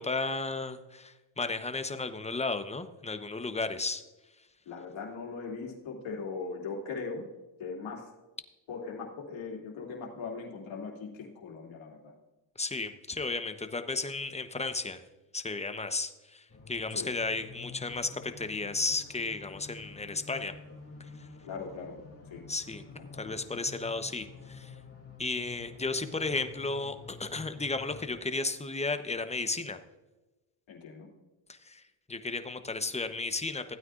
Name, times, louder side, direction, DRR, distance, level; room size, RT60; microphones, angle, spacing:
voice 1, 0.0-4.0 12.6-15.0 15.3-20.5 22.5-22.8 23.2-24.7 25.2-29.8 31.5-31.8 32.1-33.8, left 3 dB, 15° left, 9 dB, 0.9 m, -34 dB
voice 2, 4.6-7.2 7.6-8.1 8.7-12.1 16.9-17.1 21.4-22.0 22.3-22.4 22.9-23.4 30.7-31.1, left 4 dB, 65° left, -1 dB, 2.9 m, -40 dB
sound 1, 16.5-28.2, left 3 dB, 30° left, 2.9 m, -49 dB
15.5 x 9.0 x 2.5 m, 1.1 s
supercardioid pair, 75°, 50 cm